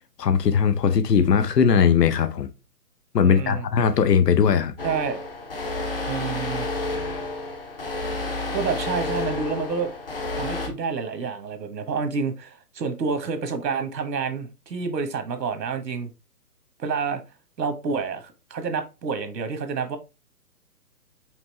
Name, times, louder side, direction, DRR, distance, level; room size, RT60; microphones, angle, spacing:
voice 1, 0.2-2.5 3.1-4.7, left 7 dB, 75° left, 0.8 m, -19 dB
voice 2, 3.2-3.6 4.8-5.2 6.1-6.7 8.5-9.9 10.3-16.1 16.8-17.2 17.6-20.0, right 5 dB, 85° right, 1.2 m, -28 dB
sound 1, 4.8-10.7, left 2 dB, 35° left, 0.6 m, -30 dB
5.2 x 2.9 x 3.0 m
hypercardioid pair, 170°, 49 cm